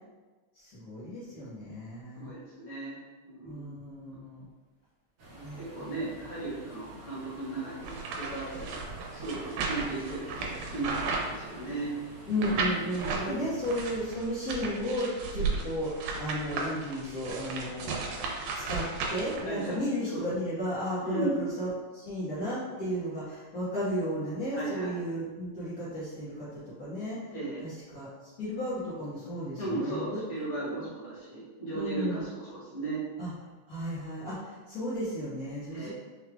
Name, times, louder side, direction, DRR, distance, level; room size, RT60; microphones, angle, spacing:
voice 1, 0.5-2.3 3.4-4.5 5.4-6.1 12.3-18.2 18.5-27.3 27.6-30.2 30.8-30.9 31.7-32.2 33.2-33.3 33.7-35.9, equal, 65° left, -12 dB, 0.9 m, -34 dB
voice 2, 2.1-3.7 5.3-11.9 13.2-13.6 19.4-19.8 20.1-20.2 21.0-21.4 24.5-24.9 27.3-27.6 29.6-33.0 35.7-35.9, right 2 dB, 35° left, -9 dB, 1.1 m, -36 dB
sound 1, 5.2-14.1, right 2 dB, 60° right, 1.4 m, -48 dB
sound 2, 7.8-11.9 12.4-13.3 13.6-19.7, right 4 dB, 90° right, 2.1 m, -35 dB
5.6 x 2.3 x 3.3 m, 1.3 s
omnidirectional pair, 3.5 m